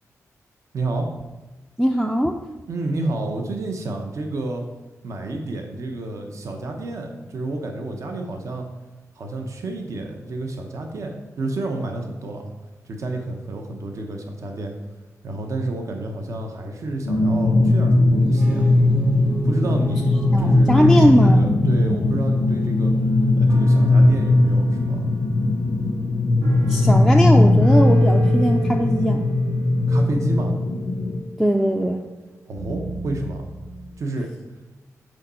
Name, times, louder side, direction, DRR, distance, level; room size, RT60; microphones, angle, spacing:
voice 1, 0.7-1.1 2.7-4.6 5.0-8.6 9.1-12.5 12.8-14.7 15.2-18.7 19.4-22.9 23.4-25.0 29.9-30.6 32.5-33.5 34.0-34.3, right 2 dB, 65° right, 3 dB, 0.8 m, -30 dB
voice 2, 1.8-2.4 20.3-21.6 26.7-29.2 31.4-32.0, equal, ahead, 3 dB, 0.3 m, -20 dB
sound 1, 17.0-31.2, left 2 dB, 90° left, 0.5 m, -18 dB
sound 2, 18.2-24.1, right 2 dB, 20° right, 0.8 m, -31 dB
sound 3, 21.7-22.9 23.5-33.9, right 3 dB, 80° right, 1.9 m, -37 dB
6.4 x 4.6 x 4.2 m, 1.1 s
wide cardioid pair, 125°, 6 cm